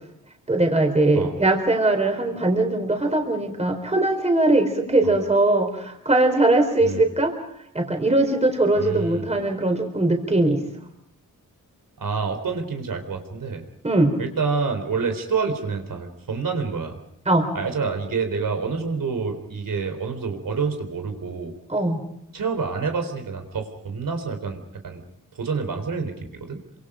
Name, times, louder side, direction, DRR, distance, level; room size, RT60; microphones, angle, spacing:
voice 1, 0.5-7.3 7.7-10.6 13.8-14.1 17.3-17.5 21.7-22.0, right 2 dB, 20° right, 4 dB, 4.3 m, -20 dB
voice 2, 8.8-9.3 12.0-13.6 14.2-17.0 17.5-21.5 22.3-25.0 25.3-26.6, right 5 dB, 75° right, 5 dB, 3.9 m, -28 dB
28.0 x 26.0 x 5.1 m, 0.73 s
wide cardioid pair, 145°, 33 cm